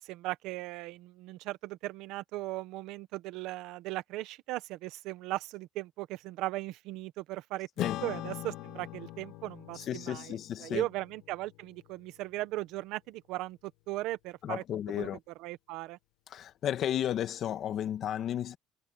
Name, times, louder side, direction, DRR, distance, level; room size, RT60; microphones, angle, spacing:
voice 1, 0.0-7.7 8.0-14.6 15.0-15.1 15.4-16.0, right 17 dB, 80° right, 1.0 m, -38 dB
Acoustic guitar / Strum, 7.8-12.5, left 15 dB, 85° left, 1.5 m, -42 dB
voice 2, 9.8-10.8 14.4-15.2 16.3-18.6, left 10 dB, 55° left, 1.6 m, -33 dB
cardioid pair, 125°, 0 cm